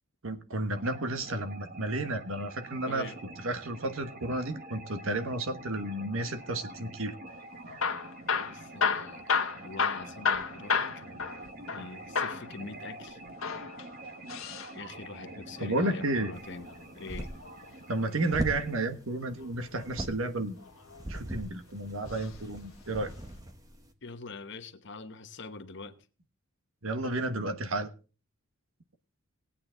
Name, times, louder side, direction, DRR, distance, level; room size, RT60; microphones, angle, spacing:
voice 1, 0.2-3.1 3.4-7.1 15.6-16.3 17.9-20.6 21.1-23.1 26.8-27.9, right 2 dB, 70° right, 1.3 m, -32 dB
sound 1, 0.8-18.9, right 2 dB, 45° right, 1.5 m, -46 dB
voice 2, 2.9-3.2 8.3-11.3 11.7-13.2 14.7-16.7 16.9-17.3 24.0-26.0, left 3 dB, 55° left, 1.1 m, -44 dB
Hammer / Drill, 7.7-11.9 12.2-12.5 13.3-14.7 16.5-17.7 19.4-19.9 20.6-21.4 22.1-22.3 22.6-22.7 23.4-23.5, left 5 dB, 80° left, 1.3 m, -31 dB
sound 2, 16.3-23.9, right 1 dB, 15° right, 1.2 m, -41 dB
18.5 x 8.8 x 3.9 m
head